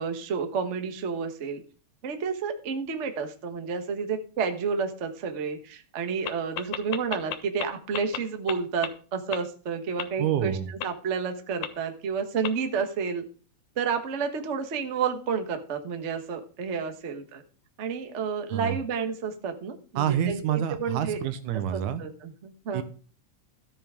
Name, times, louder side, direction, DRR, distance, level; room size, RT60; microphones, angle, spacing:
voice 1, 0.0-1.6 2.0-13.2 13.8-17.4 17.8-21.2 21.7-22.8, right 6 dB, 45° right, 6 dB, 0.9 m, -30 dB
sound 1, 6.3-7.6 7.9-8.2 8.5-8.6 8.8-8.9 9.3-9.4 10.0-10.1 10.8-10.9 11.6-11.7 12.4-12.5, left 10 dB, 65° left, 1.8 m, -30 dB
voice 2, 10.2-10.7 18.5-18.8 20.0-22.0 22.7-22.8, right 10 dB, 85° right, 11 dB, 2.4 m, -27 dB
13.5 x 8.7 x 3.7 m, 0.39 s
omnidirectional pair, 3.4 m